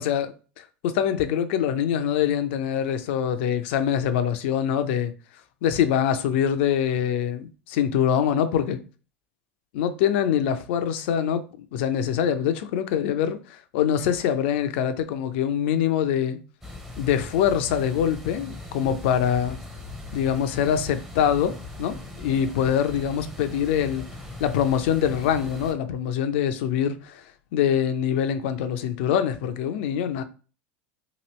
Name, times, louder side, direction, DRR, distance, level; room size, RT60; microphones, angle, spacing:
voice 1, 0.0-5.1 5.6-8.8 9.7-16.4 17.0-19.6 20.1-24.1 24.4-27.2 27.5-30.2, left 9 dB, 65° left, 0.5 m, -24 dB
sound 1, 16.6-25.7, left 2 dB, 5° right, 0.7 m, -39 dB
3.0 x 2.5 x 3.0 m
hypercardioid pair, 80°, 7 cm